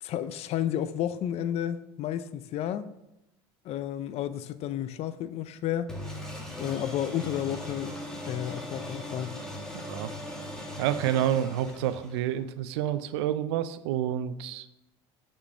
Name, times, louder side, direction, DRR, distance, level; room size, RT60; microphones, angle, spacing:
voice 1, 0.0-2.9 3.6-5.9 6.6-7.9 8.3-9.4, left 11 dB, 50° left, 0.5 m, -32 dB
sound 1, 5.9-12.4, left 1 dB, 5° left, 2.4 m, -39 dB
voice 2, 10.8-14.7, right 11 dB, 75° right, 0.5 m, -29 dB
6.3 x 6.2 x 6.3 m
hypercardioid pair, 85°, 14 cm